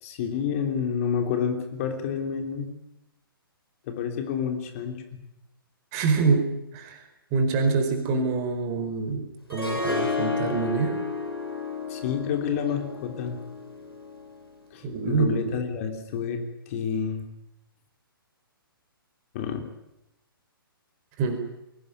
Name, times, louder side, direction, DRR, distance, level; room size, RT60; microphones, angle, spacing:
voice 1, 0.0-2.7 3.9-5.0 11.9-13.4 14.7-17.2 19.3-19.7, left 7 dB, 35° left, 5 dB, 3.2 m, -29 dB
voice 2, 5.9-7.0 7.3-11.0 14.8-15.6 21.2-21.4, right 4 dB, 30° right, 6 dB, 4.7 m, -26 dB
Harp, 9.5-14.6, left 4 dB, 90° left, 6.7 m, -32 dB
22.5 x 18.5 x 10.0 m, 0.85 s
figure-of-eight pair, 125°, 12 cm